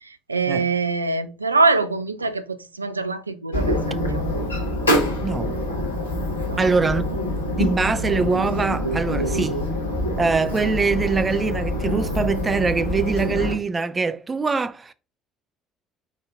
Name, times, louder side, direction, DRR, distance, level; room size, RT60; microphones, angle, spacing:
voice 1, 0.0-4.2 6.4-6.8, right 3 dB, 85° right, 0.3 m, -24 dB
sound 1, 3.5-13.6, left 1 dB, 85° left, 0.8 m, -25 dB
voice 2, 5.2-5.5 6.6-7.0 7.6-9.6 10.2-14.9, right 4 dB, 25° right, 0.5 m, -23 dB
5.2 x 3.9 x 2.5 m
figure-of-eight pair, 55°, 0 cm